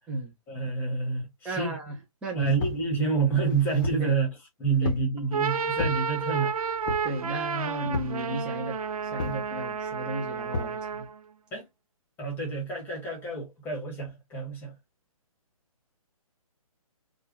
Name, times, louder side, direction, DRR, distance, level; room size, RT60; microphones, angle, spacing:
voice 1, 0.5-1.8 2.3-6.5 9.3-9.4 11.5-11.6 12.2-14.7, right 5 dB, 10° left, 1.0 m, -28 dB
voice 2, 1.4-2.0 2.2-2.6 4.0-4.1 4.8-4.9 7.0-8.8 9.1-11.1, right 1 dB, 5° right, 0.4 m, -34 dB
sound 1, 2.6-2.9 3.4-4.1 4.8-5.1 5.8-6.0 6.9-7.2 7.9-8.2 9.2-9.5 10.5-10.8, left 3 dB, 35° left, 0.7 m, -32 dB
sound 2, 5.2-11.2, right 6 dB, 80° right, 0.4 m, -31 dB
3.5 x 2.2 x 2.3 m
hypercardioid pair, 150°, 18 cm